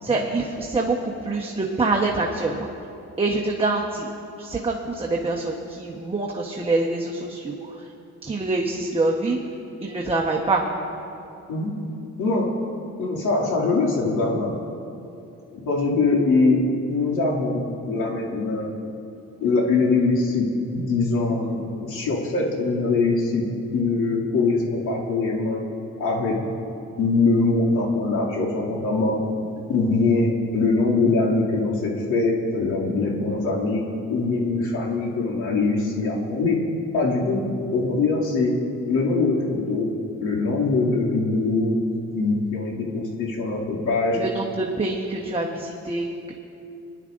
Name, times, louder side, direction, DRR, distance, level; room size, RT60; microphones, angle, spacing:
voice 1, 0.0-2.7 3.2-4.1 4.4-7.9 8.2-9.4 9.8-10.6 29.6-29.7 44.1-46.3, right 3 dB, 20° right, -2 dB, 1.1 m, -25 dB
voice 2, 13.0-14.5 15.6-16.6 16.9-18.7 19.4-20.5 20.7-23.4 23.7-25.6 26.0-26.4 27.0-29.2 29.7-33.8 34.1-36.6 36.9-37.4 37.7-38.5 38.9-39.9 40.2-41.8 42.1-44.2, left 3 dB, 85° left, -5 dB, 2.6 m, -22 dB
23.0 x 10.5 x 2.6 m, 2.7 s
cardioid pair, 90°, 30 cm